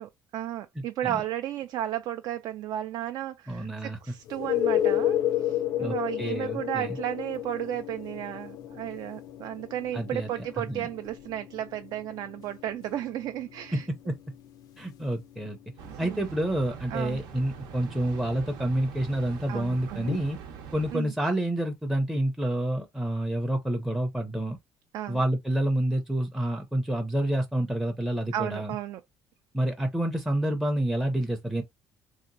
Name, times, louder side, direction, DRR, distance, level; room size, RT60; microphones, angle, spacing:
voice 1, 0.0-13.9 15.9-16.3 16.9-17.2 19.5-20.1 20.9-21.1 24.9-25.2 28.3-29.0, right 12 dB, 65° right, 0.4 m, -34 dB
voice 2, 0.8-1.2 3.5-4.0 5.8-7.0 9.9-10.3 10.6-10.9 13.7-14.2 14.8-15.6 16.0-20.4 20.7-24.6 25.1-28.7 29.5-31.6, right 1 dB, 5° right, 0.5 m, -28 dB
sound 1, 4.3-15.8 20.1-20.2, left 12 dB, 65° left, 0.4 m, -32 dB
sound 2, 15.8-20.9, right 6 dB, 90° right, 0.8 m, -43 dB
3.3 x 2.8 x 2.5 m
cardioid pair, 130°, 7 cm